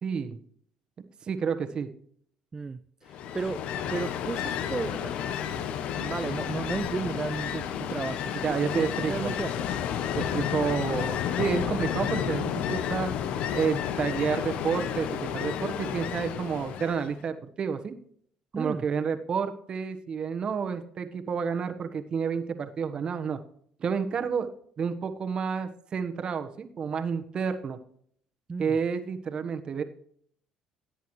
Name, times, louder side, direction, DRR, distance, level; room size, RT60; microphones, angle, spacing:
voice 1, 0.0-0.4 1.2-1.9 8.4-9.3 10.1-13.1 13.5-17.9 18.6-23.4 23.8-24.5 24.8-27.8 28.6-29.8, right 6 dB, 50° right, 8 dB, 1.3 m, -30 dB
voice 2, 2.5-3.6 3.9-9.7 18.5-18.9 28.5-28.8, right 4 dB, 25° right, 11 dB, 0.4 m, -34 dB
Ocean, 3.1-17.2, left 9 dB, 70° left, 0.8 m, -31 dB
17.0 x 8.1 x 3.2 m, 0.63 s
supercardioid pair, 75°, 2 cm